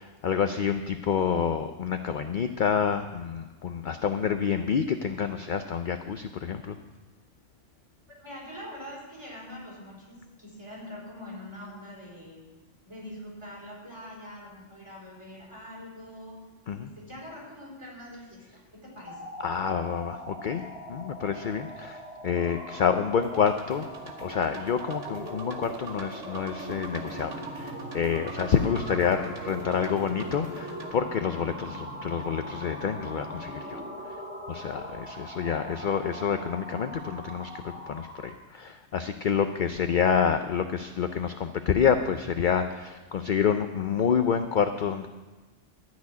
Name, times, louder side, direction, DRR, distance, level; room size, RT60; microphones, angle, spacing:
voice 1, 0.0-6.8 16.7-16.9 19.4-20.6 20.9-23.9 24.2-33.8 34.5-45.1, left 7 dB, 50° left, 8 dB, 0.6 m, -28 dB
voice 2, 8.2-12.4 12.8-16.3 16.8-19.2, left 1 dB, 25° right, -5 dB, 4.9 m, -44 dB
sound 1, 19.1-38.4, right 1 dB, 10° right, 2.1 m, -41 dB
sound 2, 23.2-30.9, right 3 dB, 80° right, 1.7 m, -42 dB
13.0 x 6.2 x 9.5 m, 1.2 s
omnidirectional pair, 1.3 m